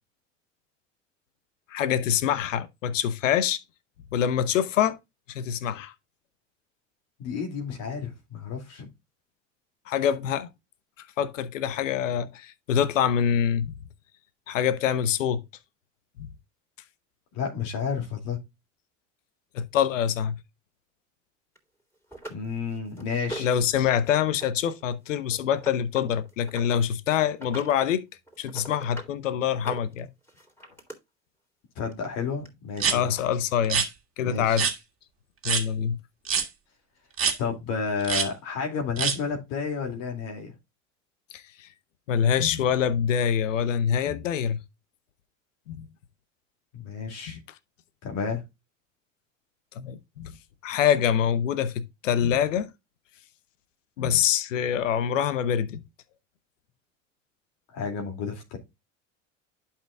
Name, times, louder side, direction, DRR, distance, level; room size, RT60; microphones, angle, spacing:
voice 1, 1.7-3.6 4.1-5.0 5.3-5.9 9.9-10.5 11.0-13.7 14.5-15.4 16.2-16.3 19.5-20.3 23.4-28.0 28.4-30.1 32.9-33.8 34.2-34.7 35.4-36.0 41.3-41.7 42.1-44.6 45.7-45.8 47.3-47.4 49.7-50.3 50.6-52.7 54.0-55.8, left 8 dB, 85° left, 0.8 m, -25 dB
voice 2, 7.2-8.9 17.3-18.4 22.3-23.5 31.8-33.1 34.2-34.6 37.4-40.5 46.7-47.4 48.0-48.4 57.7-58.6, left 5 dB, 65° left, 2.5 m, -31 dB
sound 1, 21.6-21.7 22.1-23.7 24.0-24.5 24.7-26.8 27.3-27.9 28.3-29.1 29.5-31.0 31.9-32.0 32.5-32.6, right 2 dB, 5° left, 3.4 m, -41 dB
sound 2, 32.8-33.0 33.6-33.9 34.6-34.7 35.4-35.6 36.3-36.5 37.2-37.4 38.0-38.3 39.0-39.2, right 6 dB, 35° right, 1.9 m, -24 dB
11.5 x 5.8 x 2.3 m
hypercardioid pair, 70°, 37 cm